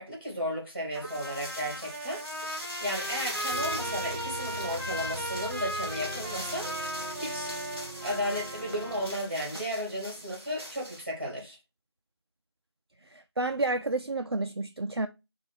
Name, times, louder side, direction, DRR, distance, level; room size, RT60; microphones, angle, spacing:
voice 1, 0.0-2.2 2.5-6.8 7.2-7.5 8.0-11.6, equal, 25° right, 1.4 m, -34 dB
sound 1, 0.9-11.0, equal, ahead, 1.4 m, -41 dB
Trumpet, 0.9-9.1, equal, 40° right, 0.9 m, -37 dB
sound 2, 3.5-9.1, right 1 dB, 20° left, 1.5 m, -42 dB
voice 2, 13.1-15.1, right 2 dB, 60° right, 0.4 m, -30 dB
5.2 x 2.3 x 3.1 m
figure-of-eight pair, 175°, 14 cm